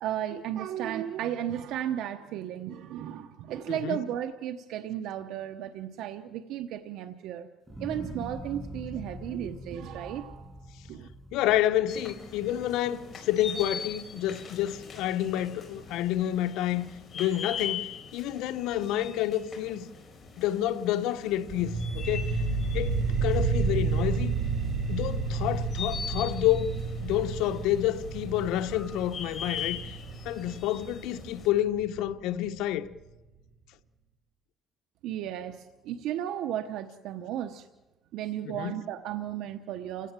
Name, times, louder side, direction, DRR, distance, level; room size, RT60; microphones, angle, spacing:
voice 1, 0.0-7.5 7.8-10.5 10.9-11.1 35.0-37.7 38.1-40.1, right 11 dB, 75° right, 1.0 m, -34 dB
voice 2, 3.7-4.0 11.3-19.9 20.4-22.4 22.7-24.3 24.9-26.7 27.0-30.0 30.2-32.9 38.4-38.8, left 12 dB, 85° left, 1.0 m, -29 dB
sound 1, 7.7-14.0 14.4-15.0, equal, 15° right, 7.4 m, -44 dB
sound 2, 11.9-31.5, left 7 dB, 35° left, 4.9 m, -42 dB
sound 3, 21.5-32.5, right 4 dB, 50° right, 3.9 m, -31 dB
28.5 x 17.0 x 7.6 m
cardioid pair, 125°, 0 cm